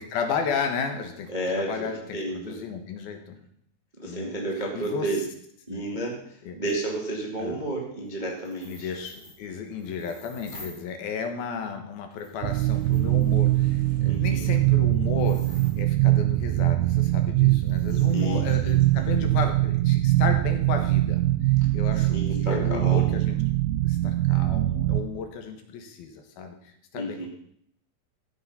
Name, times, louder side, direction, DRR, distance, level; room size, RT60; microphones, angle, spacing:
voice 1, 0.0-3.4 4.0-4.3 4.7-5.1 5.7-5.8 6.4-6.6 7.4-7.6 8.6-23.4 23.8-27.3, left 6 dB, 70° left, 5 dB, 3.0 m, -34 dB
voice 2, 1.3-2.6 4.0-5.2 5.7-6.2 6.5-8.9 14.0-14.6 18.1-19.0 22.1-23.2 26.9-27.3, right 1 dB, 20° right, -2 dB, 1.1 m, -31 dB
sound 1, 6.6-6.7 8.4-10.9 11.6-11.7 12.1-16.1 17.1-17.2 17.6-19.3, left 1 dB, 20° left, 1.5 m, -50 dB
sound 2, 12.4-25.0, right 17 dB, 80° right, 2.3 m, -22 dB
14.5 x 7.9 x 5.6 m, 0.69 s
omnidirectional pair, 4.8 m